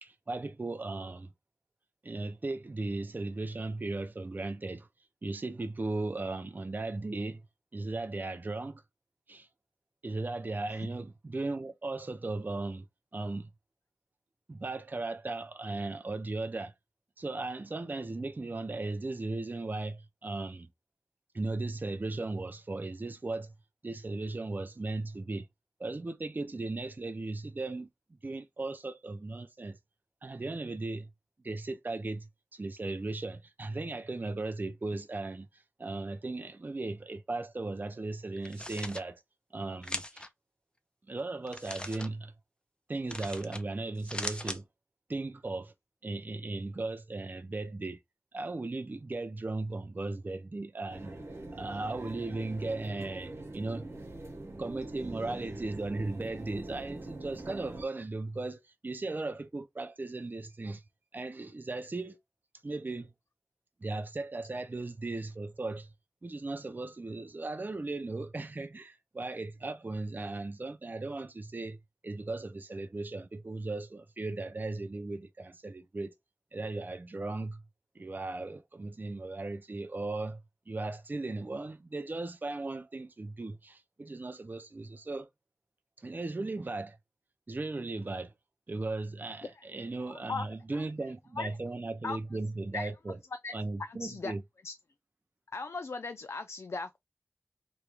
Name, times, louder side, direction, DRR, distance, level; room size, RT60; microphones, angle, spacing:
voice 1, 0.0-1.3 2.0-4.9 5.2-7.4 7.7-8.8 9.3-9.5 10.0-12.9 13.1-13.5 14.5-16.7 17.2-20.7 21.3-23.5 23.8-25.5 25.8-27.9 28.2-29.8 30.2-31.1 31.4-39.2 39.5-40.3 41.1-42.3 42.9-44.6 45.1-45.7 46.0-48.0 48.3-51.2 51.5-53.9 54.6-60.8 61.1-62.2 62.6-63.1 63.8-65.9 66.2-71.8 72.0-76.1 76.5-77.6 78.0-80.4 80.7-85.3 86.0-87.0 87.5-88.3 88.7-93.2 93.5-94.4, right 2 dB, 45° right, 0.4 m, -37 dB
sound 1, 38.4-39.0 39.8-40.3 41.5-42.1 43.1-43.6 44.0-44.6, left 1 dB, 20° left, 0.5 m, -39 dB
sound 2, 50.9-57.8, right 2 dB, 85° right, 0.9 m, -43 dB
voice 2, 93.8-94.3 94.6-94.7 95.5-97.0, left 4 dB, 80° left, 0.3 m, -37 dB
3.0 x 2.2 x 3.2 m
wide cardioid pair, 50°, 4 cm